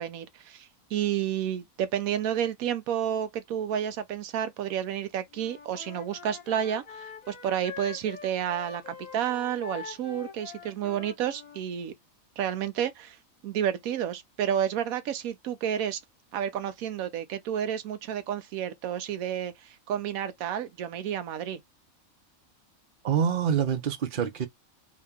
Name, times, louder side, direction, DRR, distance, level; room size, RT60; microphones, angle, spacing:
voice 1, 0.0-11.9 12.4-13.2 13.4-16.0 16.3-21.6, right 9 dB, 90° right, 1.1 m, -30 dB
Wind instrument woodwind instrument, 5.3-11.6, left 6 dB, 70° left, 1.3 m, -44 dB
voice 2, 23.0-24.5, right 8 dB, 45° right, 0.8 m, -26 dB
2.8 x 2.8 x 3.5 m
omnidirectional pair, 1.5 m